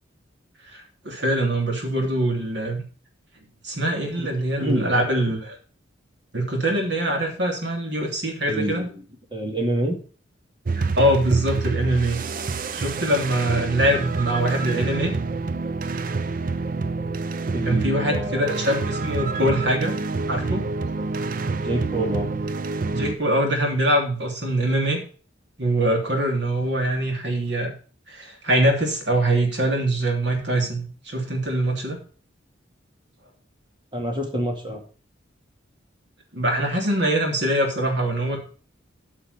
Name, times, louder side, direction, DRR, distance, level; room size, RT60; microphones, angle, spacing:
voice 1, 0.7-2.8 3.6-5.6 6.3-8.9 11.0-12.2 12.7-15.1 17.6-20.0 20.3-20.7 22.9-25.0 25.6-27.7 28.1-32.0 36.3-38.4, right 1 dB, 60° right, 2 dB, 3.0 m, -23 dB
voice 2, 4.6-4.9 8.5-9.0 9.3-10.0 17.5-18.5 21.5-22.3 33.9-34.8, right 1 dB, 25° right, 2 dB, 2.2 m, -27 dB
sound 1, 10.6-23.2, right 3 dB, 45° right, 0.5 m, -27 dB
9.5 x 5.8 x 6.6 m, 0.39 s
head